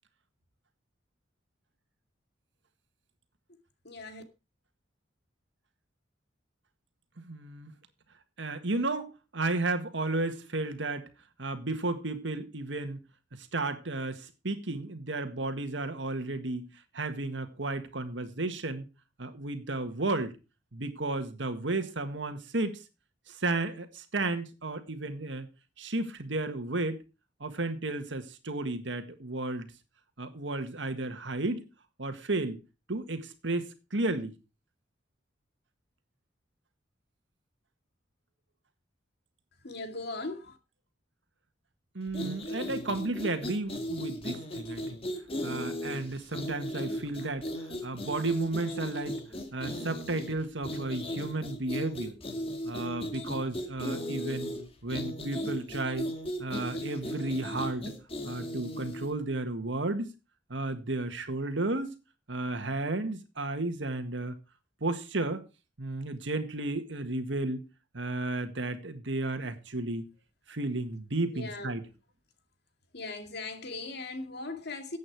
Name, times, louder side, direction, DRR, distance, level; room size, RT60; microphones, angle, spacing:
voice 1, 3.8-4.2 39.5-40.6 71.3-71.7 72.9-75.0, left 3 dB, 60° left, 2.2 m, -39 dB
voice 2, 7.2-7.7 8.4-11.1 11.4-13.0 13.4-18.9 19.2-20.3 20.7-22.8 23.3-25.5 25.8-27.0 27.4-29.7 30.2-31.7 32.0-32.6 32.9-34.4 42.0-45.0 45.4-47.5 47.8-49.2 49.5-52.2 52.6-54.5 54.8-56.1 56.4-58.0 58.2-60.1 60.5-61.9 62.3-64.4 64.8-65.5 65.8-67.7 67.9-70.1 70.5-71.8, right 2 dB, 75° right, 1.7 m, -33 dB
sound 1, 42.1-59.1, equal, 30° left, 2.3 m, -37 dB
14.0 x 8.6 x 4.6 m
head